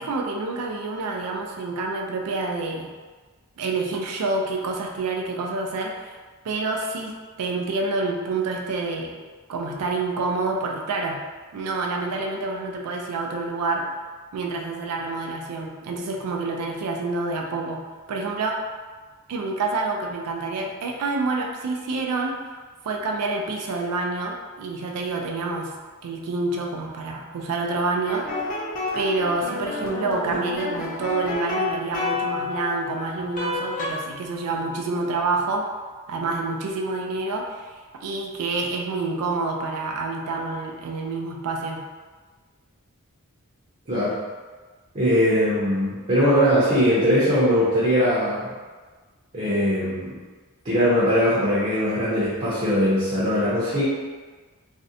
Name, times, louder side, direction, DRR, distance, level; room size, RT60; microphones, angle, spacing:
voice 1, 0.0-2.9 3.6-6.2 6.4-9.2 9.5-11.3 11.5-13.9 14.3-17.8 18.1-18.6 19.3-22.4 22.9-25.7 26.0-28.3 28.9-35.7 36.1-41.8, right 3 dB, 80° right, 1 dB, 0.4 m, -28 dB
sound 1, 28.0-33.9, left 3 dB, 35° left, 0.5 m, -30 dB
voice 2, 43.9-44.2 44.9-48.5 49.3-50.2 50.6-53.8, equal, 35° right, -10 dB, 0.6 m, -21 dB
2.5 x 2.1 x 2.6 m, 1.4 s
head